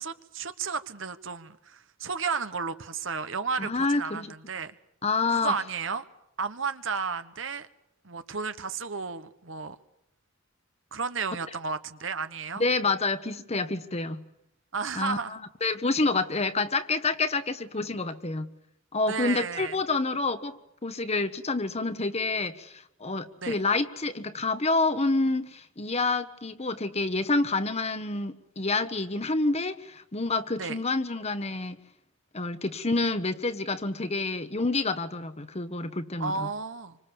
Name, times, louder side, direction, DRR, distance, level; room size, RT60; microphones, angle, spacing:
voice 1, 0.0-4.7 5.3-6.1 6.4-7.7 8.0-9.8 10.9-12.6 14.7-15.4 19.1-19.8 23.4-23.6 30.6-30.8 36.2-37.0, right 5 dB, 65° right, 1.3 m, -33 dB
voice 2, 3.6-4.3 5.0-5.5 12.5-14.3 14.9-18.5 18.9-20.6 20.8-31.8 32.3-36.5, left 3 dB, 30° left, 1.2 m, -28 dB
27.0 x 25.5 x 7.1 m
head